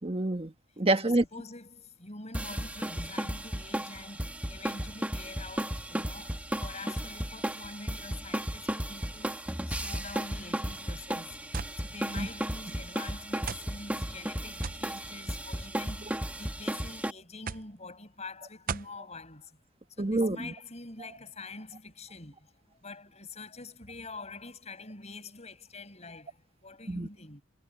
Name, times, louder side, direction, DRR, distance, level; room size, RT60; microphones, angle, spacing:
voice 1, 0.0-1.2 12.1-12.3 20.0-20.5 26.9-27.1, right 2 dB, 30° right, 1.3 m, -27 dB
voice 2, 1.0-19.6 20.0-27.4, left 3 dB, 35° left, 5.9 m, -46 dB
sound 1, 2.3-17.1, right 1 dB, 5° right, 1.6 m, -35 dB
sound 2, 11.5-11.8 12.7-12.8 13.5-13.7 14.6-14.9 15.9-16.3 17.5-17.7 18.7-19.0, right 6 dB, 45° right, 0.6 m, -37 dB
head